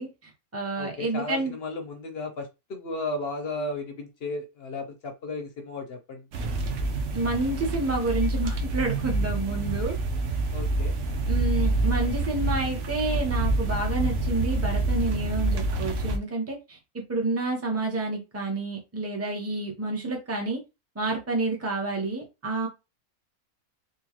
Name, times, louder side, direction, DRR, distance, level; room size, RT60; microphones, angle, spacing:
voice 1, 0.0-1.5 7.1-10.0 11.3-16.8 17.1-20.6 20.9-22.7, right 2 dB, 15° right, 1 dB, 0.8 m, -29 dB
voice 2, 0.8-6.3 10.5-11.0, left 2 dB, 55° left, 4 dB, 0.8 m, -34 dB
sound 1, 6.3-16.2, right 2 dB, 65° right, 1.0 m, -27 dB
3.8 x 2.4 x 3.0 m, 0.25 s
omnidirectional pair, 1.4 m